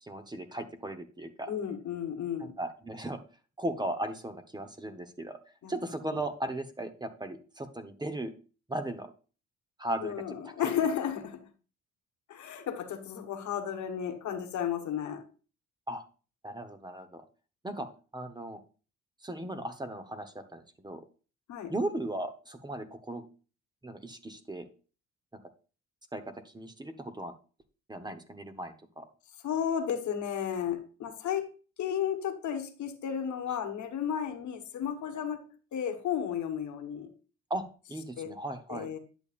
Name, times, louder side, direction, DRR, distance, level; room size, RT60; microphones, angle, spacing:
voice 1, 0.0-1.5 2.4-3.2 3.6-5.4 5.7-8.3 8.7-9.1 9.8-10.1 10.6-10.7 15.9-16.0 16.4-17.2 17.6-17.9 18.1-18.6 19.2-21.0 21.7-23.3 23.8-24.7 25.3-25.4 26.1-27.3 27.9-29.1 37.5-37.6 37.9-38.9, right 1 dB, 15° right, 1.0 m, -37 dB
voice 2, 1.5-2.6 5.6-5.7 10.0-11.5 12.3-15.2 21.5-21.7 29.4-31.5 31.8-37.1 38.2-38.3 38.7-39.0, left 8 dB, 70° left, 1.3 m, -33 dB
10.5 x 7.0 x 2.5 m
cardioid pair, 90°, 30 cm